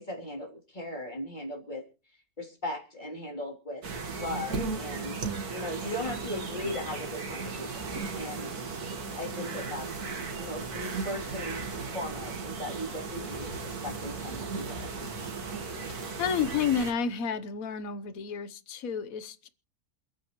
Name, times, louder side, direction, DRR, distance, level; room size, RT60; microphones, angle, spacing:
voice 1, 0.0-1.8 2.4-3.8 4.2-8.5 9.2-9.9 10.4-11.6 11.9-14.9, left 1 dB, 30° left, 1 dB, 3.5 m, -38 dB
sound 1, 3.8-16.9, right 4 dB, 80° right, 2.3 m, -36 dB
voice 2, 16.2-19.5, left 7 dB, 70° left, 13 dB, 1.4 m, -30 dB
27.5 x 9.4 x 3.1 m, 0.34 s
omnidirectional pair, 1.6 m